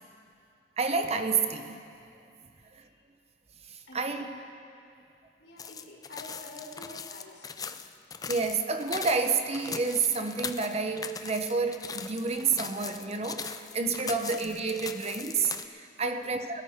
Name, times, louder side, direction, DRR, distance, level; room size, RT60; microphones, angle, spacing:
voice 1, 0.8-1.8 2.7-2.9 3.7-4.2 8.3-16.4, right 4 dB, 35° right, 6 dB, 0.8 m, -29 dB
voice 2, 3.8-4.4 5.4-7.9 16.0-16.5, left 2 dB, 80° left, -2 dB, 2.4 m, -48 dB
sound 1, 5.6-15.7, left 6 dB, 20° left, 0.4 m, -40 dB
21.0 x 13.0 x 3.6 m, 2.5 s
head